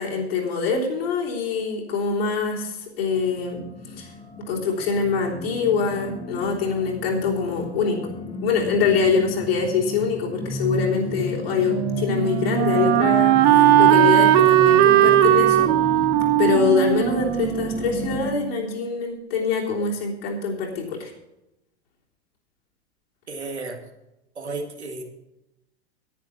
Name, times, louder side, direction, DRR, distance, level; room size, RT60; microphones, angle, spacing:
voice 1, 0.0-3.6 4.0-4.1 4.4-8.0 8.4-15.7 16.4-21.1, left 5 dB, 60° left, -2 dB, 3.5 m, -24 dB
sound 1, 3.1-18.3, left 3 dB, 15° left, 1.4 m, -32 dB
Wind instrument woodwind instrument, 11.7-18.5, right 14 dB, 40° right, 0.7 m, -18 dB
voice 2, 23.3-23.8 24.4-25.0, right 3 dB, 80° right, 3 dB, 2.0 m, -33 dB
10.0 x 10.0 x 5.8 m, 0.93 s
figure-of-eight pair, 85°, 33 cm